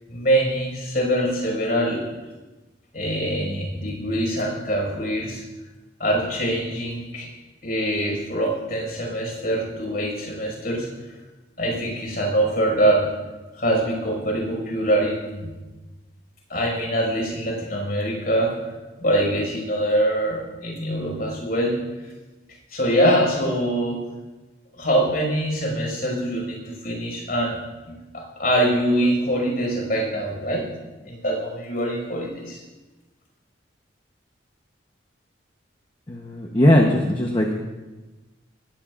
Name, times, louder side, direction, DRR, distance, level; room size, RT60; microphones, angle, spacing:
voice 1, 0.1-2.0 2.9-5.4 6.0-7.3 7.6-11.2 11.6-13.0 13.5-15.5 16.5-21.8 22.0-22.1 22.7-24.0 24.7-27.6 27.8-30.6 31.0-32.6, right 1 dB, 50° left, -1 dB, 5.7 m, -24 dB
voice 2, 36.1-37.5, left 1 dB, 25° left, 1 dB, 1.0 m, -19 dB
19.5 x 16.5 x 2.5 m, 1.2 s
head